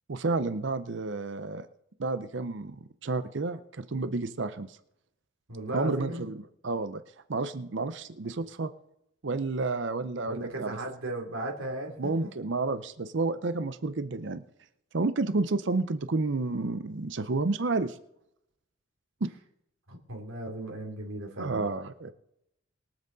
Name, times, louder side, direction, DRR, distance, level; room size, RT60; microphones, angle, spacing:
voice 1, 0.1-1.7 2.0-2.8 3.0-4.8 5.7-7.0 7.3-8.7 9.2-10.8 12.0-14.4 14.9-18.0 19.2-19.3 21.4-22.1, right 3 dB, 60° right, 12 dB, 0.6 m, -30 dB
voice 2, 5.5-6.2 10.2-12.3 19.9-21.7, right 1 dB, 85° right, 0 dB, 2.9 m, -36 dB
22.5 x 7.9 x 4.0 m, 0.78 s
head